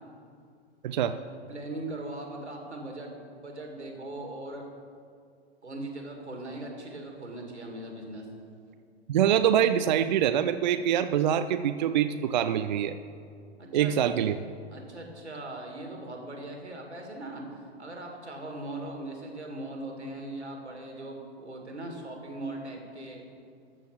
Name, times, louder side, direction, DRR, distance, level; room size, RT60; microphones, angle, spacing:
voice 1, 0.8-1.2 9.1-13.0 13.7-14.3, right 9 dB, 45° right, 10 dB, 0.4 m, -24 dB
voice 2, 1.5-3.1 3.4-4.6 5.6-8.3 13.6-14.3 14.7-23.2, right 2 dB, 80° right, 1 dB, 2.5 m, -39 dB
13.5 x 7.1 x 6.1 m, 2.3 s
figure-of-eight pair, 105°, 33 cm